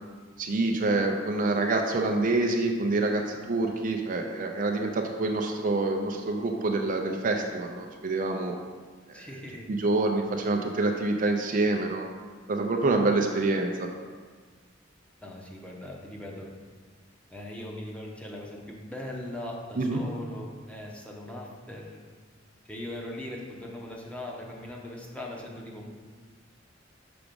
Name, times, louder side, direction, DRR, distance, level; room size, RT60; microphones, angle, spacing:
voice 1, 0.4-8.5 9.1-9.3 9.7-12.1 12.5-13.9 19.8-20.0, right 2 dB, 45° right, 3 dB, 0.5 m, -26 dB
voice 2, 9.1-9.7 15.2-16.5 17.3-22.0 22.7-25.9, left 1 dB, 5° left, -2 dB, 0.9 m, -40 dB
6.0 x 4.9 x 5.2 m, 1.5 s
head